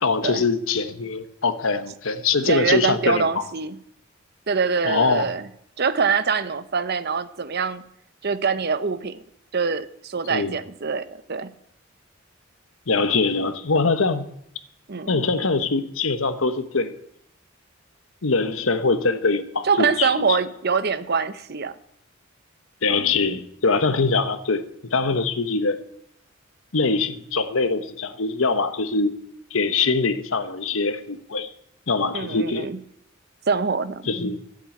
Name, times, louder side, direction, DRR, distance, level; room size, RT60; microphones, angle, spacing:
voice 1, 0.0-3.4 4.8-5.3 10.3-10.5 12.9-14.3 15.1-17.0 18.2-20.4 22.8-24.6 24.9-25.8 26.7-29.1 29.5-31.5 31.9-32.7 34.0-34.4, left 4 dB, 80° left, 1.1 m, -23 dB
voice 2, 2.5-3.8 4.5-5.5 5.8-7.8 8.2-9.2 9.5-11.5 14.9-15.2 19.6-21.8 32.1-32.8 33.5-34.0, right 5 dB, 50° right, 0.8 m, -24 dB
14.0 x 7.9 x 8.7 m
head